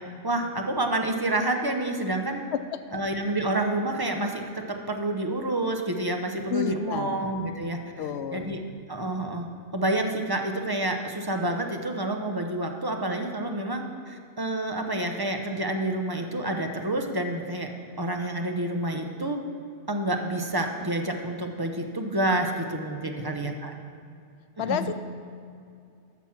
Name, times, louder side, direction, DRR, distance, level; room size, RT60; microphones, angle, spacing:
voice 1, 0.2-2.4 2.9-7.8 8.3-8.6 8.9-9.5 9.7-17.7 18.0-19.4 19.9-23.7 24.6-24.9, right 1 dB, 25° right, 3 dB, 0.7 m, -28 dB
voice 2, 6.5-7.2 8.0-8.6 23.1-23.5 24.6-24.9, left 9 dB, 90° left, 11 dB, 0.9 m, -31 dB
13.0 x 6.2 x 5.9 m, 2.4 s
omnidirectional pair, 1.1 m